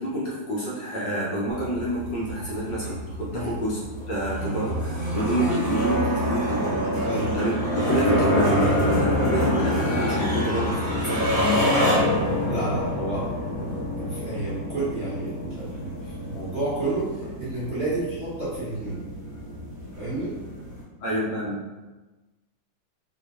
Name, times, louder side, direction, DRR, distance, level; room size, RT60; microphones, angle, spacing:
voice 1, 0.0-6.8 7.3-11.3 19.9-20.0 21.0-21.7, right 1 dB, 65° left, -6 dB, 1.2 m, -28 dB
sound 1, 1.5-20.8, left 1 dB, 30° left, 1.3 m, -26 dB
voice 2, 7.0-7.3 12.4-13.3 14.0-19.0 20.0-20.4, right 2 dB, 45° right, -11 dB, 0.9 m, -30 dB
4.2 x 2.9 x 2.4 m, 1.2 s
omnidirectional pair, 2.4 m